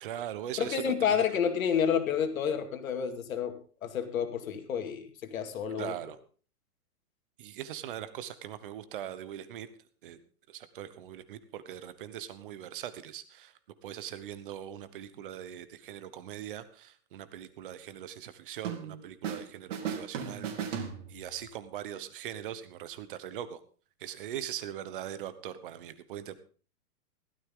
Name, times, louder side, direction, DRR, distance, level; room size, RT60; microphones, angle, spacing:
voice 1, 0.0-1.2 5.8-6.2 7.4-9.7 10.0-10.2 10.5-13.5 13.8-23.6 24.0-26.4, right 11 dB, 35° right, 13 dB, 1.0 m, -41 dB
voice 2, 0.6-3.6 3.8-5.9, left 7 dB, 60° left, 6 dB, 2.4 m, -29 dB
sound 1, 18.6-19.5 19.7-21.5, right 7 dB, 50° right, 2.7 m, -36 dB
15.5 x 13.0 x 3.8 m, 0.40 s
hypercardioid pair, 165°, 47 cm